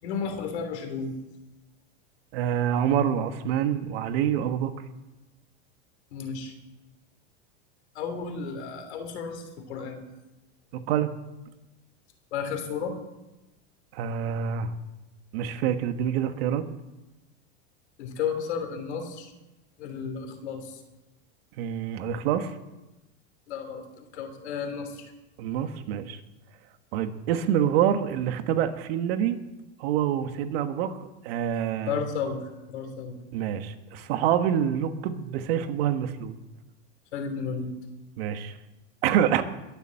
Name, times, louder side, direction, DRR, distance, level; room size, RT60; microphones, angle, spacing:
voice 1, 0.0-1.2 6.1-6.5 7.9-10.0 12.3-13.0 18.0-19.3 19.8-20.8 23.5-25.1 31.9-33.2 37.1-37.7, left 6 dB, 85° left, 6 dB, 3.3 m, -33 dB
voice 2, 2.3-4.7 10.7-11.1 13.9-14.7 15.3-16.6 21.6-22.5 25.4-26.2 26.9-29.4 29.8-30.9 31.2-32.0 33.3-36.4 38.2-38.6 39.0-39.4, right 9 dB, 65° right, 9 dB, 1.5 m, -26 dB
21.5 x 7.3 x 7.6 m, 1.0 s
supercardioid pair, 130°, 32 cm